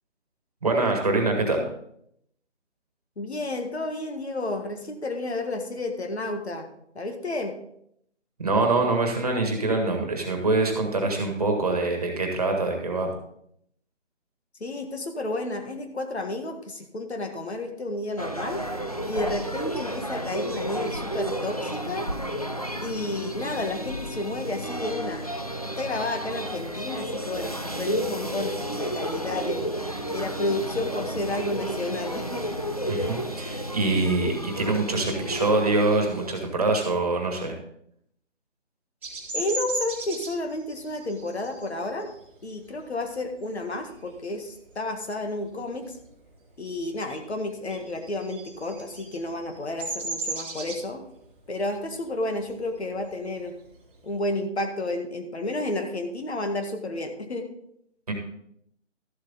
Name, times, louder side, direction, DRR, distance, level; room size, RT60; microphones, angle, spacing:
voice 1, 0.6-1.7 8.4-13.1 32.9-37.6 58.1-58.2, right 2 dB, 30° right, 3 dB, 1.7 m, -24 dB
voice 2, 3.2-6.7 7.0-7.5 14.6-18.6 19.1-22.1 22.8-25.2 25.6-29.7 30.1-32.4 39.3-42.1 42.4-46.0 46.6-51.0 51.5-53.5 54.0-57.5, left 2 dB, 60° left, 5 dB, 1.8 m, -31 dB
sound 1, 18.2-36.5, right 1 dB, 30° left, 0.5 m, -32 dB
Bird vocalization bird call bird song, 39.0-44.2 44.6-45.0 45.3-46.5 46.8-54.1, right 3 dB, 10° right, 1.1 m, -37 dB
13.0 x 7.8 x 3.9 m, 0.72 s
figure-of-eight pair, 170°, 37 cm